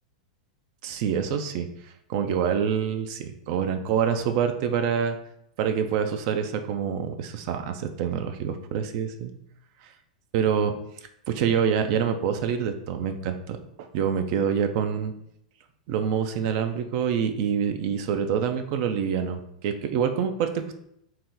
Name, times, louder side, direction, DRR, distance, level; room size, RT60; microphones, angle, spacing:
voice 1, 0.8-1.7 2.1-5.2 5.6-9.3 10.3-10.7 11.3-15.1 15.9-20.7, right 7 dB, 55° right, 7 dB, 0.4 m, -26 dB
2.8 x 2.1 x 3.7 m, 0.74 s
hypercardioid pair, 115°, 4 cm